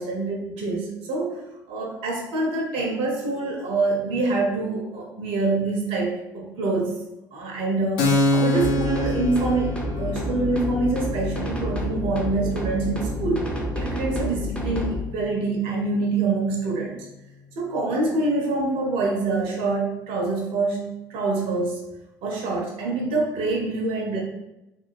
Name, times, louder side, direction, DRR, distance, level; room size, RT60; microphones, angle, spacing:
voice 1, 0.0-7.0 7.3-17.0 17.6-21.9 22.2-24.2, right 3 dB, 60° right, 0 dB, 0.5 m, -26 dB
Keyboard (musical), 8.0-15.3, left 2 dB, 65° left, 0.5 m, -28 dB
sound 1, 8.5-15.0, left 1 dB, 10° left, 0.6 m, -29 dB
2.4 x 2.1 x 3.0 m, 0.94 s
figure-of-eight pair, 55°, 11 cm